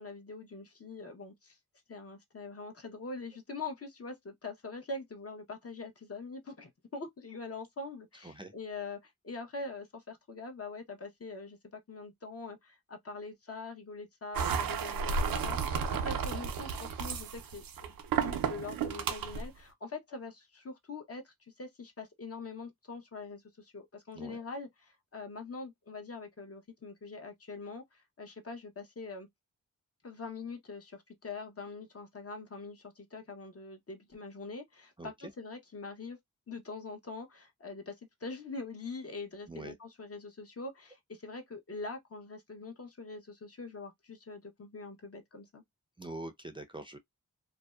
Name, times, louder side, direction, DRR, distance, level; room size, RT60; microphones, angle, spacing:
voice 1, 0.0-1.6 1.9-17.9 18.2-29.3 30.0-36.2 36.5-45.6, left 3 dB, 45° left, 0.9 m, -43 dB
voice 2, 8.2-8.5 24.1-24.4 35.0-35.3 39.5-39.8 46.0-47.0, right 2 dB, 15° right, 0.5 m, -44 dB
sound 1, 14.3-19.5, right 6 dB, 90° right, 0.5 m, -33 dB
2.6 x 2.1 x 2.2 m
cardioid pair, 60°, 34 cm